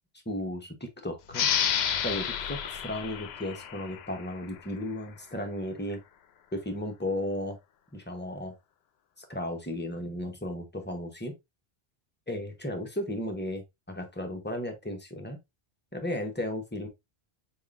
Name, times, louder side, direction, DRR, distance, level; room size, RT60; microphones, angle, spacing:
voice 1, 0.3-1.5 2.0-6.0 6.5-7.6 7.9-8.5 9.2-11.3 12.3-15.4 15.9-16.9, left 1 dB, 10° left, 0.7 m, -35 dB
sound 1, 1.3-4.6, left 9 dB, 75° left, 0.8 m, -30 dB
4.6 x 3.6 x 2.4 m
omnidirectional pair, 1.1 m